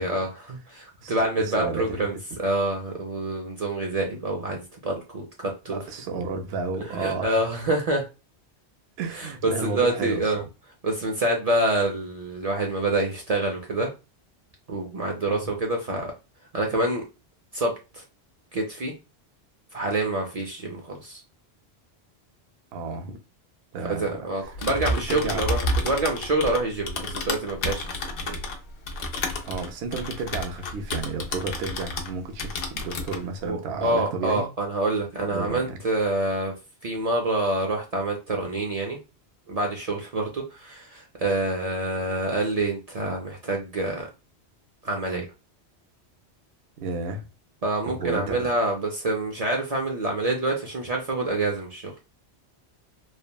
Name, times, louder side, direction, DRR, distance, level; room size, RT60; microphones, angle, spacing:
voice 1, 0.0-5.8 6.9-8.1 9.1-10.4 10.8-13.9 14.7-16.1 16.5-17.0 17.5-18.0 18.5-18.9 19.7-21.2 23.8-28.4 33.4-36.5 36.8-39.0 39.5-44.1 44.8-45.3 47.6-51.9, right 2 dB, 45° right, 0.5 m, -27 dB
voice 2, 1.0-2.1 5.7-7.5 9.0-10.5 15.3-15.5 22.7-23.2 23.7-24.5 24.8-25.5 29.4-34.5 35.3-35.8 46.8-47.3 47.9-48.5, right 4 dB, 75° right, 0.8 m, -32 dB
Typing, 24.4-32.1 32.4-33.2, left 2 dB, 65° left, 0.7 m, -30 dB
3.2 x 2.1 x 2.2 m
omnidirectional pair, 1.1 m